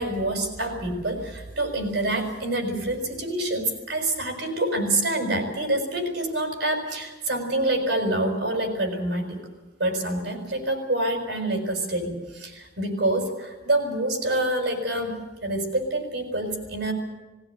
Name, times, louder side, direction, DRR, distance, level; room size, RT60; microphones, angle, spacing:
voice 1, 0.0-9.4 9.8-16.9, right 1 dB, 60° right, 3 dB, 5.8 m, -27 dB
18.5 x 17.5 x 9.3 m, 1.2 s
head